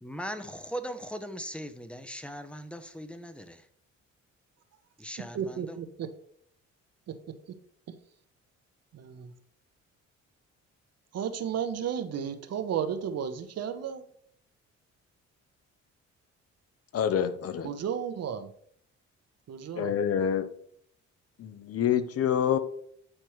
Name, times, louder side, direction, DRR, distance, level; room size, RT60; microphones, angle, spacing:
voice 1, 0.0-3.6 5.0-5.8, equal, 5° left, 9 dB, 0.6 m, -39 dB
voice 2, 5.3-6.1 7.1-7.3 8.9-9.3 11.1-14.0 17.6-18.5 19.5-19.9, right 8 dB, 55° right, 10 dB, 0.8 m, -33 dB
voice 3, 16.9-17.7 19.8-20.5 21.4-22.6, left 9 dB, 50° left, 12 dB, 0.7 m, -27 dB
8.7 x 4.4 x 3.1 m, 0.65 s
cardioid pair, 90°, 30 cm